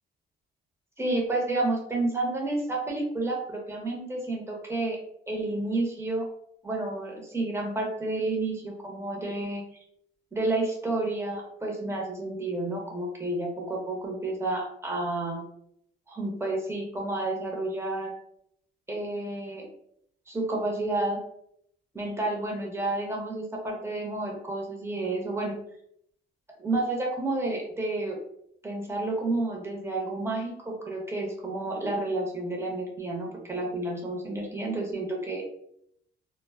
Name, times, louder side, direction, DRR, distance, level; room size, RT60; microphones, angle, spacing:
voice 1, 1.0-5.0 5.3-6.3 6.6-9.6 10.3-15.4 16.1-18.1 18.9-19.7 20.3-21.2 21.9-25.5 26.6-28.2 28.6-35.5, right 2 dB, 15° right, -1 dB, 0.9 m, -30 dB
2.2 x 2.0 x 3.5 m, 0.72 s
cardioid pair, 90°, 20 cm